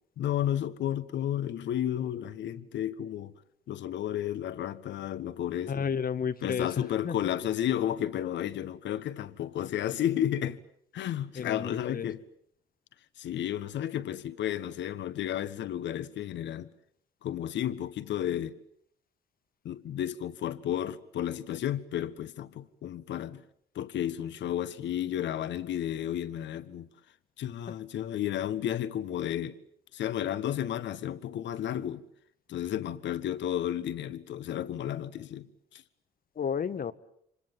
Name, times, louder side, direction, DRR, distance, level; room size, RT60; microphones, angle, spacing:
voice 1, 0.2-3.3 3.7-5.9 6.4-10.6 10.9-12.2 13.2-16.7 17.2-18.6 19.6-23.4 23.7-26.9 27.4-29.6 29.9-32.0 32.5-35.8, left 11 dB, 65° left, 1.4 m, -32 dB
voice 2, 5.7-7.1 11.3-12.1 36.3-36.9, left 7 dB, 45° left, 1.5 m, -32 dB
29.0 x 25.5 x 7.4 m
hypercardioid pair, 50°, 20 cm